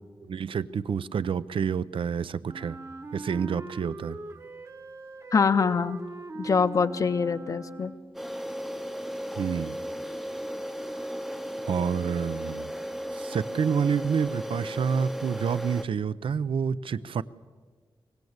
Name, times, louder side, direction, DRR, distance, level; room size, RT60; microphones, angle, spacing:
voice 1, 0.3-2.8 3.1-4.2 9.4-9.8 11.7-12.7 13.1-17.2, right 6 dB, 85° right, 16 dB, 0.6 m, -28 dB
Wind instrument woodwind instrument, 2.5-8.2, right 2 dB, 35° right, 1.0 m, -41 dB
voice 2, 5.3-6.0 6.4-7.9, left 5 dB, 40° left, 12 dB, 0.6 m, -24 dB
sound 1, 8.1-15.8, equal, ahead, 0.6 m, -35 dB
24.5 x 18.5 x 8.0 m, 1.5 s
wide cardioid pair, 180°, 9 cm